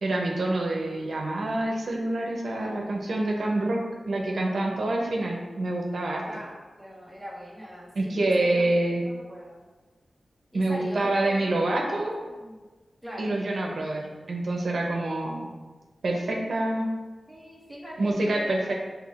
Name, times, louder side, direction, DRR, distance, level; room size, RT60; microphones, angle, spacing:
voice 1, 0.0-3.8 4.0-6.2 8.0-9.0 10.5-12.1 13.2-15.5 16.0-16.9 18.0-18.7, right 2 dB, 75° right, -1 dB, 0.7 m, -26 dB
voice 2, 6.2-9.6 10.5-12.6 13.0-13.3 17.3-18.7, equal, 5° right, -5 dB, 1.0 m, -41 dB
6.0 x 3.3 x 2.4 m, 1.3 s
wide cardioid pair, 115°, 0 cm